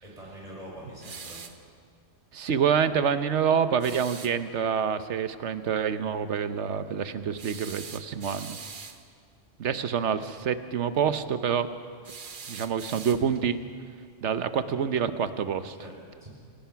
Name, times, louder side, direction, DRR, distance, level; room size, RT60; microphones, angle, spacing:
voice 1, 0.0-1.4 15.7-16.3, equal, 30° right, -4 dB, 6.5 m, -44 dB
sound 1, 1.0-1.6 3.8-4.4 7.4-9.0 12.0-13.5, right 5 dB, 45° right, 1.1 m, -42 dB
voice 2, 2.3-8.6 9.6-11.7 12.5-13.6 14.2-15.8, right 7 dB, 70° right, 11 dB, 1.2 m, -27 dB
28.5 x 17.5 x 5.8 m, 2.1 s
omnidirectional pair, 1.2 m